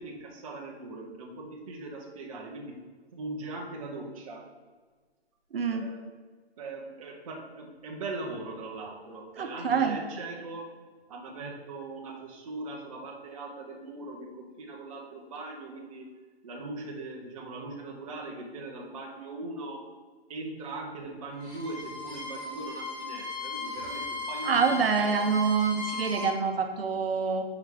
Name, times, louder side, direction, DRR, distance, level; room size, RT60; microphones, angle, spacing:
voice 1, 0.0-2.8 3.1-4.5 5.7-6.1 6.6-10.7 11.1-16.1 16.4-19.9 20.3-25.2, right 2 dB, 30° right, -1 dB, 0.7 m, -40 dB
voice 2, 5.5-5.9 9.4-10.0 24.4-27.4, right 5 dB, 60° right, 5 dB, 0.8 m, -26 dB
Bowed string instrument, 21.3-26.4, left 3 dB, 15° left, 1.2 m, -37 dB
6.1 x 4.7 x 3.5 m, 1.4 s
hypercardioid pair, 160°, 33 cm